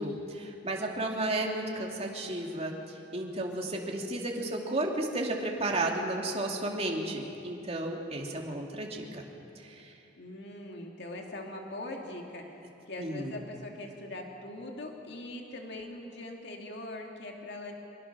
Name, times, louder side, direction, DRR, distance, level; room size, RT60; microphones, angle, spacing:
voice 1, 0.0-9.2 9.6-9.9 13.0-13.4, right 1 dB, 35° right, 0 dB, 2.5 m, -33 dB
voice 2, 10.2-17.7, left 1 dB, 65° left, 1 dB, 2.3 m, -41 dB
24.5 x 22.0 x 6.1 m, 2.8 s
head